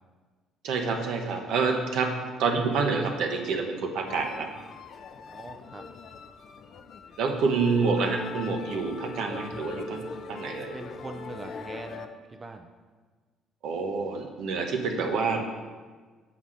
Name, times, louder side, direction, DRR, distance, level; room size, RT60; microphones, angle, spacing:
voice 1, 0.6-4.5 7.2-10.7 13.6-15.4, right 4 dB, 75° right, 3 dB, 0.9 m, -28 dB
sound 1, 4.1-12.1, left 5 dB, 55° left, 0.5 m, -42 dB
voice 2, 5.2-5.9 10.7-12.7, right 2 dB, 25° right, 6 dB, 0.5 m, -42 dB
7.0 x 4.1 x 6.2 m, 1.4 s
supercardioid pair, 85°, 0 cm